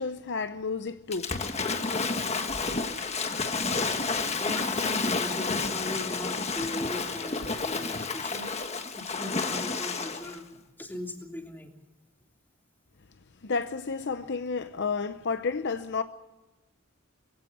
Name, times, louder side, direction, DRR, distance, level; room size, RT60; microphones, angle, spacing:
voice 1, 0.0-1.4 13.4-16.0, left 4 dB, 55° left, 0.8 m, -31 dB
Waves surf / Splash splatter, 1.1-10.4, left 4 dB, 30° left, 1.4 m, -30 dB
voice 2, 4.1-8.5 8.9-11.7, left 1 dB, 10° left, 3.1 m, -39 dB
22.5 x 16.5 x 8.0 m
head